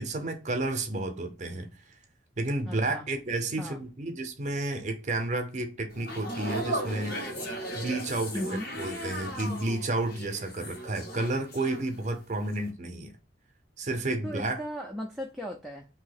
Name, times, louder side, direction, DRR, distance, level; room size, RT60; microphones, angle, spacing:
voice 1, 0.0-1.7 2.4-7.2 7.7-13.1 13.8-14.6, right 2 dB, 40° right, 0.6 m, -31 dB
voice 2, 2.7-3.1 3.6-3.8 8.3-8.6 14.2-15.9, equal, ahead, 0.3 m, -37 dB
sound 1, 5.9-12.2 12.4-12.7, right 1 dB, 55° left, 1.5 m, -36 dB
2.8 x 2.7 x 3.9 m
head